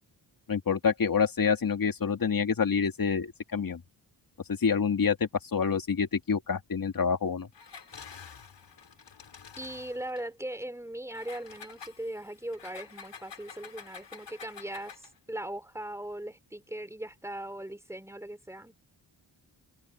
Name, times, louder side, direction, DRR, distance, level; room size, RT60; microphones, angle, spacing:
voice 1, 0.5-3.8 4.5-7.5, left 6 dB, 50° left, 2.4 m, -27 dB
Engine, 7.5-10.3 11.1-15.2, left 6 dB, 70° left, 4.2 m, -48 dB
voice 2, 9.6-18.7, right 1 dB, 5° right, 3.3 m, -39 dB
cardioid pair, 90°, 44 cm